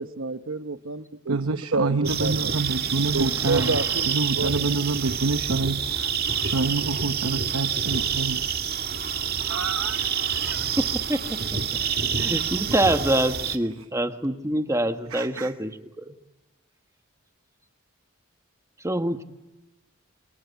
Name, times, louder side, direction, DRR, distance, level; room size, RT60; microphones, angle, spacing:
voice 1, 0.0-1.4 1.7-2.6 3.1-4.1 4.4-4.6, right 3 dB, 70° right, 1.2 m, -29 dB
voice 2, 1.3-3.8 4.1-6.1 6.4-8.4 9.5-10.7 15.1-15.5, right 3 dB, 85° right, 0.9 m, -27 dB
sound 1, 2.0-13.6, right 7 dB, 45° right, 2.0 m, -27 dB
voice 3, 2.8-3.9 10.8-11.4 12.2-15.7 16.0-16.1 18.8-19.2, right 1 dB, 15° right, 1.5 m, -26 dB
27.0 x 26.5 x 8.2 m
head